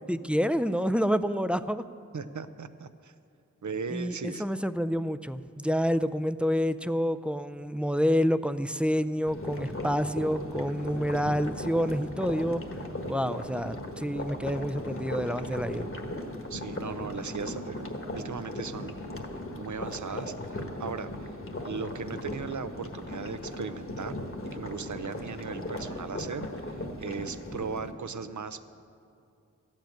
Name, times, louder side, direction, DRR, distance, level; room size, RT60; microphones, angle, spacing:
voice 1, 0.1-1.8 3.9-12.6 13.1-15.9, equal, 5° right, 12 dB, 0.4 m, -28 dB
voice 2, 2.1-3.1 3.6-4.4 16.5-17.9 18.1-19.0 19.5-21.3 21.6-24.2 24.5-28.6, right 5 dB, 75° right, 12 dB, 0.6 m, -37 dB
sound 1, 9.3-27.9, left 1 dB, 45° left, 1.3 m, -37 dB
14.5 x 7.4 x 9.1 m, 2.5 s
wide cardioid pair, 50°, 30 cm